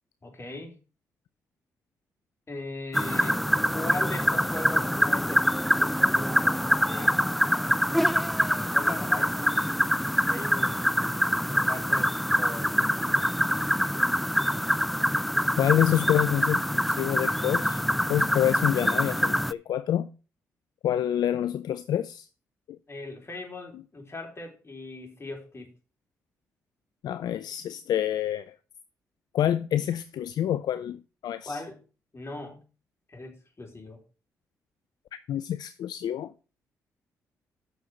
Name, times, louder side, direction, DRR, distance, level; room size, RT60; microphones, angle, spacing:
voice 1, 0.2-0.8 2.5-3.4 3.7-5.5 5.8-6.5 6.9-7.3 8.7-9.7 10.3-10.8 11.5-13.2 22.9-25.7 31.5-31.8 32.1-32.7 33.1-34.0, left 2 dB, 35° left, 3.9 m, -39 dB
sound 1, 2.9-19.5, equal, ahead, 0.4 m, -25 dB
voice 2, 15.6-17.8 18.1-20.1 20.8-22.3 27.0-28.6 29.3-31.6 35.3-36.3, left 11 dB, 65° left, 0.4 m, -27 dB
7.0 x 6.5 x 6.4 m
hypercardioid pair, 45°, 7 cm